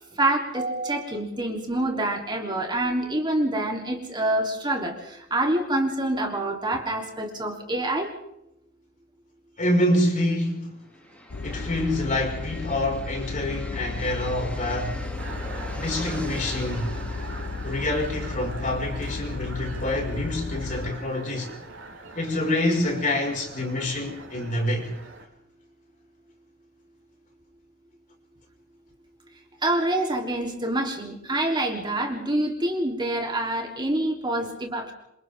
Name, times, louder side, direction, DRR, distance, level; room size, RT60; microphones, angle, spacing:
voice 1, 0.2-8.1 29.6-34.9, right 1 dB, 25° right, 3.5 m, -26 dB
voice 2, 9.6-10.8 11.4-15.1 15.7-16.9 17.6-21.5 22.2-24.9, left 1 dB, 40° left, 5.7 m, -26 dB
sound 1, 10.8-20.6, equal, 5° left, 4.1 m, -43 dB
sound 2, 11.3-20.9, left 3 dB, 55° left, 0.7 m, -34 dB
sound 3, 15.2-25.3, right 3 dB, 65° right, 4.2 m, -42 dB
28.5 x 27.0 x 3.7 m
head